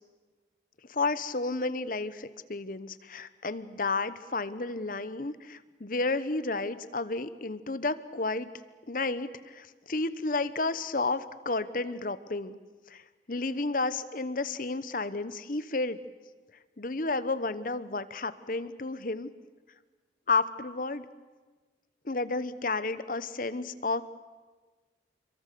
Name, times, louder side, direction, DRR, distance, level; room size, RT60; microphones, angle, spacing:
voice 1, 0.9-8.5 8.9-12.6 12.9-13.0 13.3-16.0 16.8-19.3 20.3-21.1 22.0-24.0, left 3 dB, 50° left, 13 dB, 1.0 m, -31 dB
26.5 x 23.5 x 6.8 m, 1.3 s
head